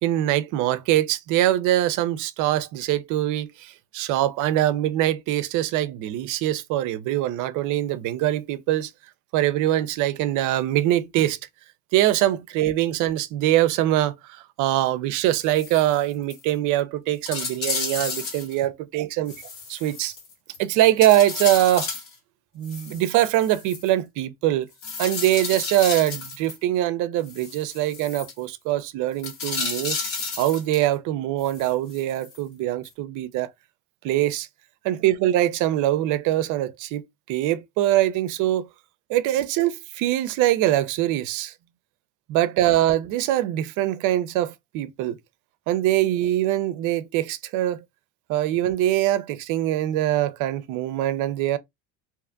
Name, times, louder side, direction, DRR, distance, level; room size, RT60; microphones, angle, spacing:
voice 1, 0.0-8.9 9.3-11.4 11.9-19.3 19.7-20.1 20.6-21.9 22.6-24.7 25.0-30.0 30.4-33.5 34.0-34.5 34.8-37.0 37.3-38.7 39.1-41.5 42.3-45.2 45.7-47.8 48.3-51.6, right 13 dB, 60° right, 0.5 m, -23 dB
sound 1, 15.3-16.0 16.3-16.4 16.8-16.9 17.3-18.6 19.3-20.6 21.0-22.1 22.6-23.9 24.8-26.6 27.3-28.3 29.2-30.9 31.4-32.4 32.9-33.0, left 4 dB, 70° left, 1.5 m, -32 dB
2.6 x 2.4 x 2.4 m
supercardioid pair, 105°, 35 cm